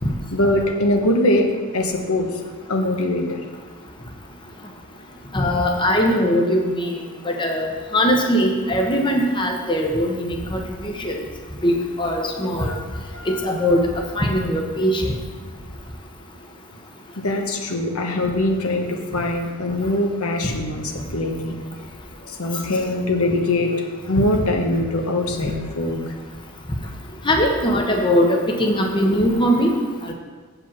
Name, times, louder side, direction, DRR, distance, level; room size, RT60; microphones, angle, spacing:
voice 1, 0.3-2.4 2.7-3.4 12.6-12.8 13.1-13.7 17.2-21.5 22.3-23.7 24.1-26.1, left 1 dB, 80° left, 2 dB, 1.2 m, -22 dB
voice 2, 5.3-6.9 7.2-11.2 11.6-12.7 13.3-13.8 14.1-15.1 25.4-25.5 27.2-29.7 30.0-30.1, equal, 20° left, 1 dB, 0.9 m, -20 dB
7.8 x 5.1 x 7.4 m, 1.5 s
head